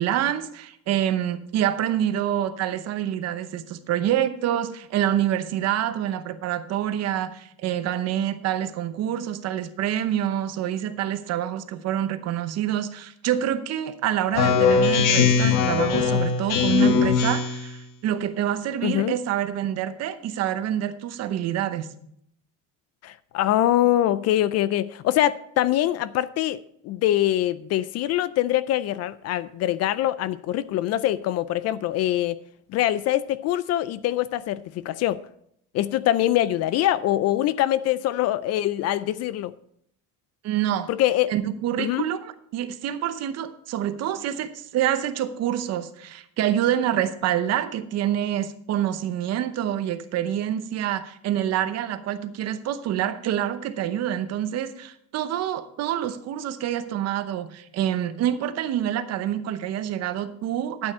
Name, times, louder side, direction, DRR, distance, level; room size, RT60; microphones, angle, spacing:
voice 1, 0.0-21.9 40.4-40.9 41.3-60.9, right 11 dB, 45° right, 0.8 m, -27 dB
Speech synthesizer, 14.3-17.7, left 6 dB, 65° left, 1.3 m, -20 dB
voice 2, 18.8-19.1 23.0-32.4 32.7-35.2 35.7-39.5 40.9-41.3 41.8-42.0, left 13 dB, 45° left, 0.4 m, -24 dB
12.0 x 8.9 x 4.2 m
cardioid pair, 170°, 35 cm